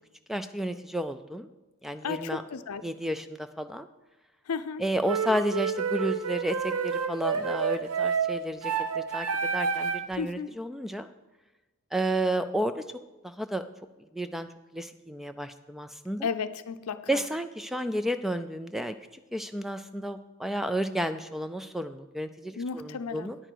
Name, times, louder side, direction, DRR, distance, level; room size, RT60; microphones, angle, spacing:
voice 1, 0.3-1.5 1.8-2.4 2.8-3.9 4.8-9.3 9.5-11.1 11.9-12.8 13.2-13.6 14.1-16.3 17.1-18.9 19.3-23.4, right 1 dB, ahead, 10 dB, 0.3 m, -32 dB
voice 2, 2.0-2.8 4.5-4.8 10.2-10.5 16.2-17.2 22.6-23.3, left 5 dB, 85° left, 12 dB, 0.5 m, -33 dB
sound 1, 5.1-10.2, right 6 dB, 90° right, 0.7 m, -29 dB
10.0 x 8.8 x 4.6 m, 1.1 s
head